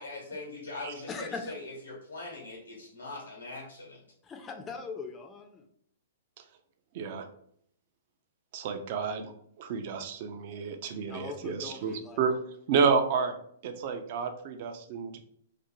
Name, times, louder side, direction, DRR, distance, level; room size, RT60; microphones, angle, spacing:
voice 1, 0.0-4.0, left 2 dB, 85° left, -4 dB, 1.0 m, -41 dB
voice 2, 1.1-1.5 4.2-5.6 11.1-12.2, left 4 dB, 20° left, 5 dB, 0.4 m, -40 dB
voice 3, 8.5-12.4 12.7-13.3 13.6-15.2, right 5 dB, 50° right, 7 dB, 0.4 m, -30 dB
2.5 x 2.1 x 2.9 m, 0.67 s
hypercardioid pair, 125°, 0 cm